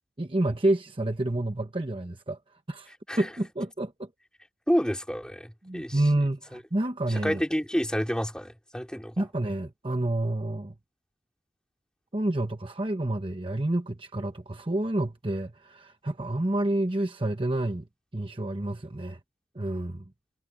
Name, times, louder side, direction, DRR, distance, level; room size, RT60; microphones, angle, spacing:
voice 1, 0.2-4.1 5.6-7.4 9.2-10.7 12.1-17.9 18.1-19.2 19.5-20.0, right 1 dB, 30° right, 1.0 m, -29 dB
voice 2, 4.7-6.0 7.2-9.1, equal, 5° left, 4.3 m, -29 dB
head